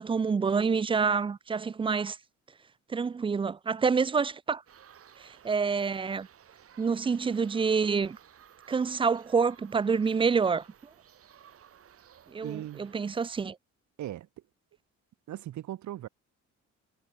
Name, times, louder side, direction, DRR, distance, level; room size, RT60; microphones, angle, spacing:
voice 1, 0.0-2.2 2.9-4.6 5.4-6.3 6.8-8.2 8.7-10.6 12.3-12.5 12.9-13.6, right 5 dB, 20° right, 0.3 m, -27 dB
sound 1, 4.7-13.5, right 9 dB, 50° right, 1.3 m, -56 dB
voice 2, 12.4-12.9 14.0-14.4 15.3-16.1, right 13 dB, 70° right, 1.3 m, -38 dB
cardioid pair, 90°, 30 cm